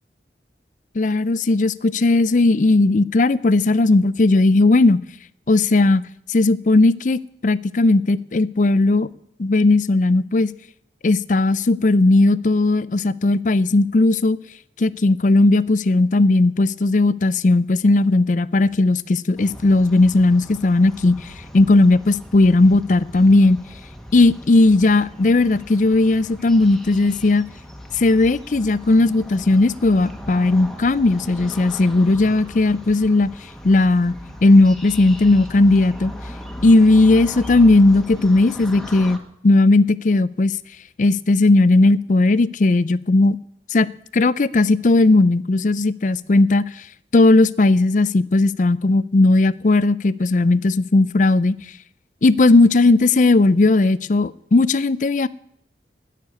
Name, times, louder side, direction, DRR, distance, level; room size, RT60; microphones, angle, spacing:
voice 1, 1.0-5.0 5.5-6.0 6.3-9.1 9.4-10.5 11.0-14.4 14.8-21.3 21.5-23.6 24.1-27.4 27.9-33.3 33.6-36.1 36.6-39.2 39.4-40.5 41.0-43.4 43.7-43.9 44.1-46.6 47.1-51.5 52.2-55.3, left 2 dB, 45° left, 18 dB, 0.5 m, -16 dB
sound 1, 19.4-39.2, equal, ahead, 1.3 m, -38 dB
18.5 x 6.7 x 8.5 m, 0.73 s
head